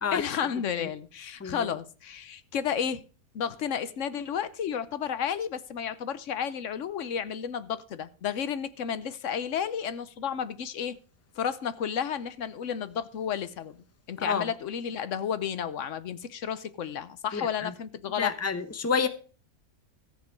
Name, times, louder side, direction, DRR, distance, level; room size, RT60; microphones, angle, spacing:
voice 1, 0.1-3.0 3.3-11.0 11.4-18.3, left 8 dB, 60° left, 1.1 m, -32 dB
voice 2, 17.3-17.7 18.2-19.1, left 5 dB, 15° left, 0.6 m, -29 dB
14.0 x 7.6 x 4.6 m
omnidirectional pair, 1.6 m